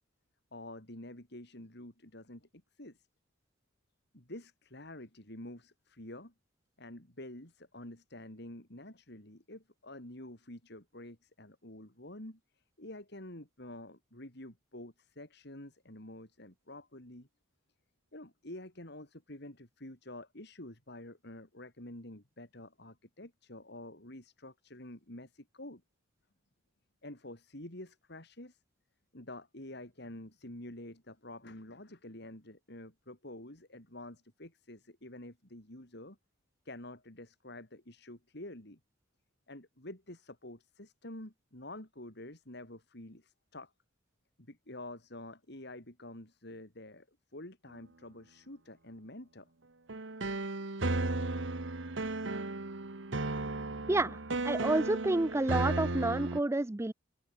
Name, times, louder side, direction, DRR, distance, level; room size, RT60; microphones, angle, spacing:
voice 1, 0.5-3.1 4.1-6.3 6.8-17.3 18.1-25.8 27.0-28.6 29.1-36.2 36.7-38.8 39.5-43.7 44.4-49.5, left 1 dB, 60° left, 5.1 m, -48 dB
sound 1, 49.9-56.4, right 2 dB, 70° right, 1.5 m, -34 dB
voice 2, 53.9-54.2 54.4-56.9, right 2 dB, 15° right, 0.5 m, -29 dB
open air
head